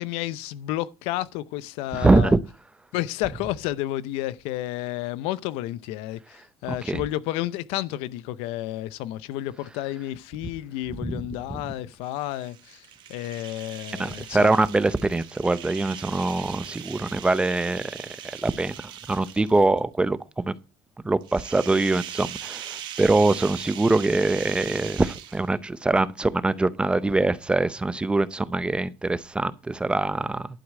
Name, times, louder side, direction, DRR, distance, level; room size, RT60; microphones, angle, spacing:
voice 1, 0.0-2.4 2.9-14.5, left 15 dB, 80° left, 0.7 m, -31 dB
voice 2, 1.9-2.4 6.8-7.0 11.0-11.1 11.5-11.6 14.0-17.8 18.4-20.5 21.0-30.5, right 2 dB, 10° right, 0.6 m, -23 dB
sound 1, 12.0-19.8 21.2-25.7, right 10 dB, 55° right, 1.6 m, -40 dB
11.5 x 4.8 x 7.4 m
cardioid pair, 135°, 10 cm